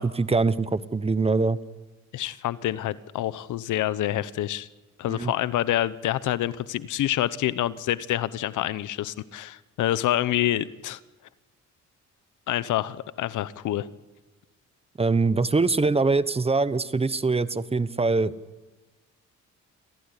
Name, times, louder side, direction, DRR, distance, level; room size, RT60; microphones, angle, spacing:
voice 1, 0.2-1.6 5.0-5.3 15.0-18.3, right 3 dB, 20° right, 15 dB, 1.0 m, -23 dB
voice 2, 2.1-4.7 5.0-11.0 12.5-13.9, left 13 dB, 80° left, 17 dB, 0.9 m, -27 dB
27.0 x 16.0 x 9.9 m, 1.2 s
cardioid pair, 90°, 30 cm